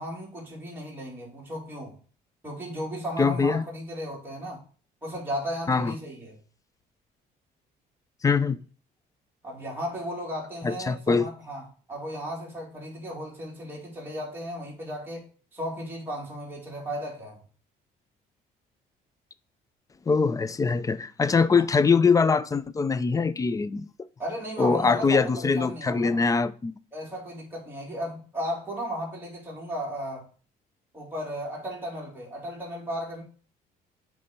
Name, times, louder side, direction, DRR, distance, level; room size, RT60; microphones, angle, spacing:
voice 1, 0.0-1.9 2.4-4.6 5.0-6.4 9.4-15.3 15.5-17.4 21.5-21.6 24.2-26.3 26.9-30.3 30.9-33.2, equal, 10° right, 3.1 m, -35 dB
voice 2, 3.2-3.7 5.7-5.9 8.2-8.6 10.6-11.3 20.1-23.9 24.6-26.7, left 5 dB, 20° left, 0.4 m, -23 dB
7.8 x 3.2 x 5.1 m
cardioid pair, 110°, 17 cm